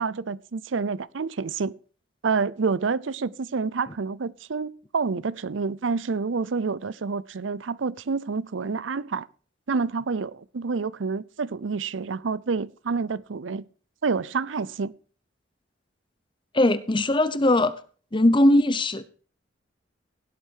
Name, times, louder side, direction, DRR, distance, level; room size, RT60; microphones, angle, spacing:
voice 1, 0.0-1.8 2.2-9.3 9.7-13.7 14.0-14.9, right 4 dB, 80° right, 0.6 m, -28 dB
voice 2, 16.5-17.7 18.1-19.1, left 1 dB, 25° left, 0.8 m, -20 dB
17.0 x 8.2 x 4.6 m
head